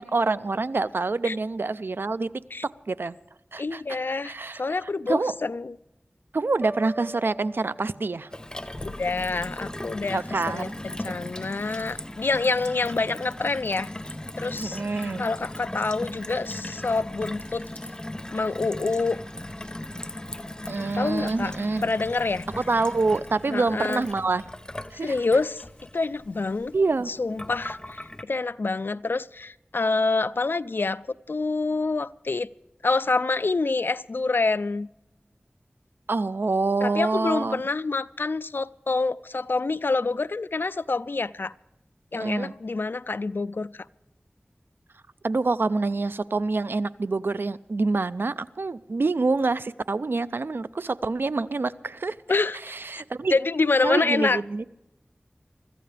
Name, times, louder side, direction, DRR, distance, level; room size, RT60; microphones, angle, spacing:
voice 1, 0.0-2.3 2.6-3.1 3.5-3.8 4.2-4.6 5.1-5.3 6.3-8.3 10.1-10.7 14.6-15.3 20.7-21.9 22.7-24.4 24.9-25.2 26.7-27.1 36.1-37.6 42.1-42.5 45.2-52.2 52.7-53.3 53.8-54.6, right 3 dB, 80° right, 0.5 m, -26 dB
voice 2, 3.6-5.8 8.8-13.9 14.4-14.8 15.2-17.7 18.3-19.2 21.0-21.6 21.8-22.5 23.5-24.1 24.9-25.6 25.9-26.7 27.1-32.5 32.8-34.9 36.8-41.5 42.1-43.9 52.3-52.6 53.3-54.4, left 3 dB, 70° left, 0.4 m, -27 dB
sound 1, 6.6-8.5, right 1 dB, 20° right, 0.6 m, -41 dB
Gurgling / Water tap faucet / Sink (filling or washing), 8.3-28.2, left 1 dB, 20° left, 0.7 m, -38 dB
sound 2, 10.6-28.0, left 2 dB, 55° left, 6.9 m, -59 dB
24.5 x 14.5 x 3.4 m
wide cardioid pair, 60°, 4 cm